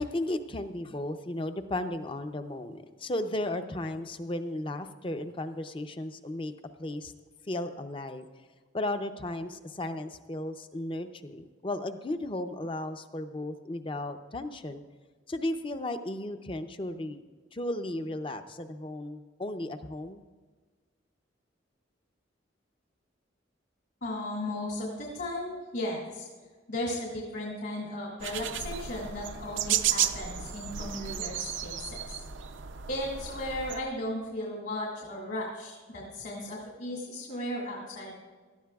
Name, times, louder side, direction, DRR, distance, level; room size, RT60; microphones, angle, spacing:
voice 1, 0.0-6.5 6.8-7.1 7.5-8.2 8.7-14.8 15.3-17.2 17.5-20.2, left 1 dB, 25° left, 9 dB, 0.6 m, -35 dB
voice 2, 24.0-26.3 26.7-32.2 32.9-38.1, left 1 dB, 60° left, -3 dB, 2.3 m, -36 dB
sound 1, 28.2-33.8, right 9 dB, 70° right, 0.6 m, -33 dB
18.0 x 13.0 x 2.4 m, 1.4 s
head